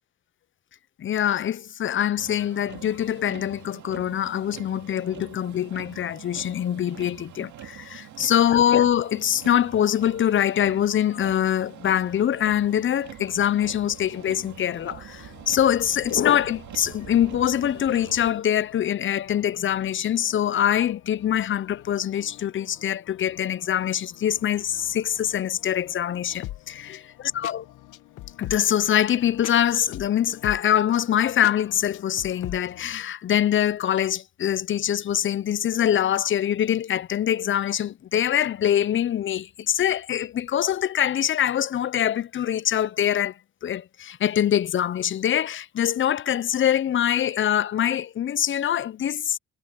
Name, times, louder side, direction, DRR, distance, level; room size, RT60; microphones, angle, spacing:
voice 1, 1.0-27.0 27.3-27.6 28.4-43.4 43.6-49.4, left 10 dB, 40° left, 0.6 m, -24 dB
Motor vehicle (road), 2.2-18.3, right 11 dB, 70° right, 2.2 m, -44 dB
sound 1, 13.4-33.0, left 15 dB, 90° left, 1.2 m, -45 dB
cardioid pair, 90°, 30 cm